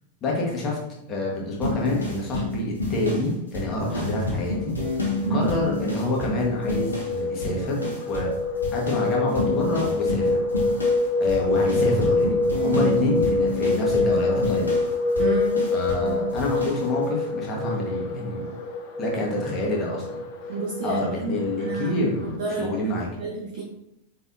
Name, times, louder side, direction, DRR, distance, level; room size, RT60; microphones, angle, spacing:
voice 1, 0.2-0.8 1.1-4.7 5.3-8.3 8.7-10.4 11.2-14.8 15.7-18.4 19.0-20.1 20.8-23.1, left 1 dB, 30° left, -2 dB, 1.6 m, -27 dB
sound 1, 1.6-7.2 7.4-8.4 8.6-16.1 16.4-16.8, left 2 dB, 80° left, 1.0 m, -29 dB
sound 2, 4.6-22.4, left 3 dB, 50° left, 0.7 m, -26 dB
voice 2, 15.2-15.6 16.0-16.3 20.5-21.9 22.4-22.8 23.2-23.6, right 4 dB, 55° right, -5 dB, 1.0 m, -30 dB
4.5 x 3.9 x 2.7 m, 0.83 s
figure-of-eight pair, 90°, 0 cm